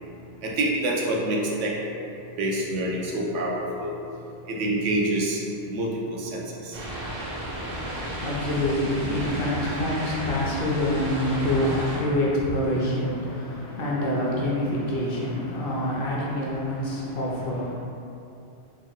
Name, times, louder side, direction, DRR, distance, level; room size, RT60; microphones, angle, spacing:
voice 1, 0.4-1.7 2.4-3.9 4.5-5.4 5.7-6.8, right 1 dB, 85° right, -2 dB, 0.9 m, -26 dB
sound 1, 6.7-12.0, right 1 dB, 55° right, 0.8 m, -33 dB
voice 2, 7.5-17.7, left 1 dB, 60° left, -5 dB, 0.7 m, -26 dB
3.4 x 2.1 x 3.5 m, 2.7 s
omnidirectional pair, 1.2 m